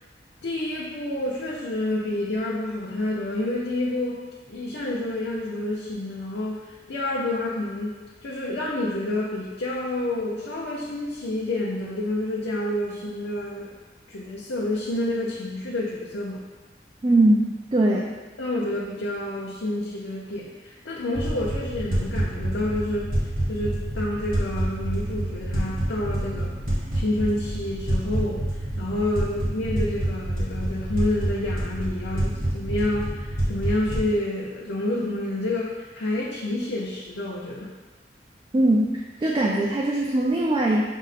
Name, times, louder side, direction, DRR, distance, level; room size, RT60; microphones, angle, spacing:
voice 1, 0.4-4.2 4.5-13.7 14.1-16.4 18.4-23.1 23.5-26.5 26.9-37.7, left 1 dB, 80° left, -5 dB, 0.6 m, -29 dB
voice 2, 17.0-18.1 38.5-38.9 39.2-40.8, right 1 dB, 25° right, -2 dB, 0.3 m, -20 dB
sound 1, 21.1-34.1, right 1 dB, 55° right, 1.3 m, -28 dB
6.1 x 2.1 x 4.1 m, 1.3 s
head